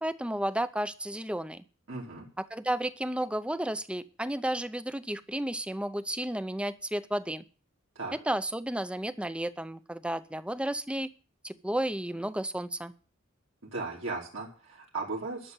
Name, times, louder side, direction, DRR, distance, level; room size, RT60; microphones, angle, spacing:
voice 1, 0.0-1.6 2.4-7.4 8.1-11.1 11.4-12.9, right 1 dB, 5° right, 14 dB, 0.6 m, -32 dB
voice 2, 1.9-2.3 7.9-8.1 13.6-15.5, right 3 dB, 70° right, -3 dB, 3.1 m, -36 dB
12.0 x 6.7 x 9.0 m, 0.39 s
head